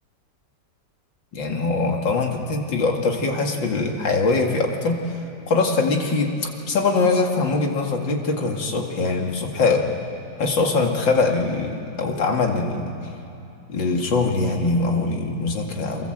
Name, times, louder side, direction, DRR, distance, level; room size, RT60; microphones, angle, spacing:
voice 1, 1.3-5.0 5.5-9.9 10.4-12.9 13.7-16.1, left 3 dB, 85° left, 2 dB, 2.9 m, -22 dB
27.5 x 23.5 x 8.0 m, 2.8 s
omnidirectional pair, 2.0 m